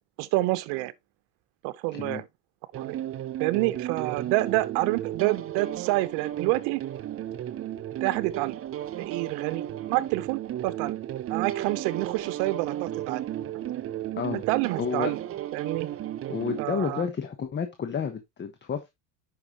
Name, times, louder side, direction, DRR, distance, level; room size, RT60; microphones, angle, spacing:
voice 1, 0.2-0.9 1.6-2.2 2.7-3.0 3.4-6.8 8.0-8.6 9.0-10.9 11.3-13.3 14.5-15.2 15.5-15.9 16.6-17.0, right 19 dB, 65° right, 1.0 m, -28 dB
voice 2, 1.9-2.2 14.2-14.4 14.8-15.1 16.3-18.9, left 6 dB, 25° left, 1.2 m, -30 dB
sound 1, 2.7-16.7, right 12 dB, 30° right, 0.7 m, -34 dB
9.9 x 5.7 x 3.0 m
supercardioid pair, 115°, 43 cm